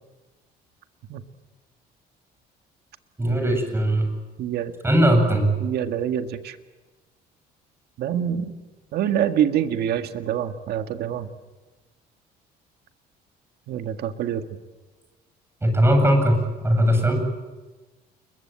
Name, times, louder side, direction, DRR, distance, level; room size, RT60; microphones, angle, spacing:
voice 1, 3.2-4.1 4.8-5.6 15.6-17.2, equal, 15° right, 5 dB, 7.8 m, -19 dB
voice 2, 4.4-4.7 5.6-6.6 8.0-8.5 8.9-11.3 13.7-14.5 17.0-17.1, right 9 dB, 70° right, 8 dB, 1.8 m, -26 dB
29.5 x 22.0 x 8.9 m, 1.2 s
cardioid pair, 110°, 17 cm